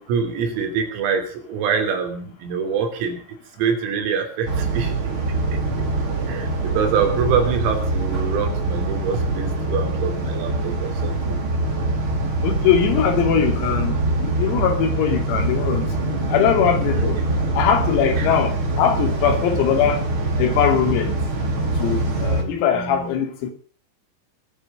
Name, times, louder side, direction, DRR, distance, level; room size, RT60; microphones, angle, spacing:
voice 1, 0.0-3.2 3.6-4.9 6.3-11.4 16.8-17.2 18.2-18.3 22.1-23.2, right 6 dB, 85° right, 5.7 m, -25 dB
sound 1, 4.5-22.4, right 2 dB, 30° right, 2.8 m, -24 dB
voice 2, 12.4-15.9 16.3-17.2 17.5-20.0 20.4-21.1 21.8-23.5, left 8 dB, 85° left, 5.2 m, -21 dB
20.5 x 8.6 x 6.7 m
omnidirectional pair, 6.0 m